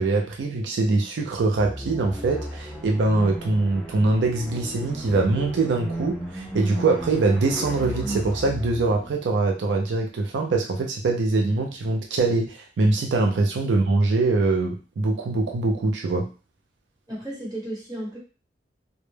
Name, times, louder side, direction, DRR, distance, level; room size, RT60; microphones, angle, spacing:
voice 1, 0.0-16.3, right 3 dB, 85° right, 2 dB, 0.4 m, -23 dB
sound 1, 1.5-9.2, right 1 dB, ahead, 0.3 m, -35 dB
voice 2, 17.1-18.2, right 1 dB, 20° right, -6 dB, 1.1 m, -34 dB
2.1 x 2.1 x 3.1 m, 0.34 s
head